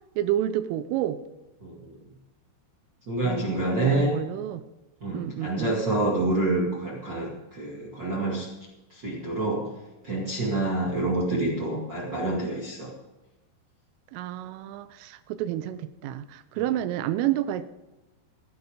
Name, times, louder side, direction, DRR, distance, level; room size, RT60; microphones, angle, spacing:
voice 1, 0.2-1.2 3.2-4.6 5.1-5.7 14.1-17.7, right 12 dB, 90° right, 13 dB, 3.4 m, -30 dB
voice 2, 1.6-2.0 3.1-4.2 5.0-8.5 8.9-9.7 10.0-12.9 16.5-16.6, right 2 dB, 45° right, -4 dB, 1.4 m, -27 dB
16.5 x 10.5 x 5.1 m, 1.1 s
omnidirectional pair, 5.6 m